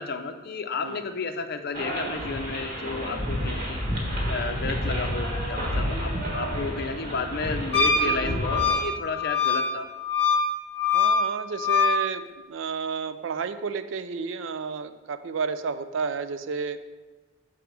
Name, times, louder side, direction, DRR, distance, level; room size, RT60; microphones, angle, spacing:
voice 1, 0.0-3.8 4.3-9.9, left 4 dB, 50° left, 7 dB, 0.5 m, -32 dB
sound 1, 1.7-8.7, equal, 45° right, 1.5 m, -30 dB
Wind instrument woodwind instrument, 7.7-12.0, left 4 dB, 30° left, 1.0 m, -24 dB
voice 2, 10.9-16.8, right 5 dB, 65° right, 11 dB, 0.4 m, -31 dB
6.8 x 4.9 x 4.6 m, 1.3 s
head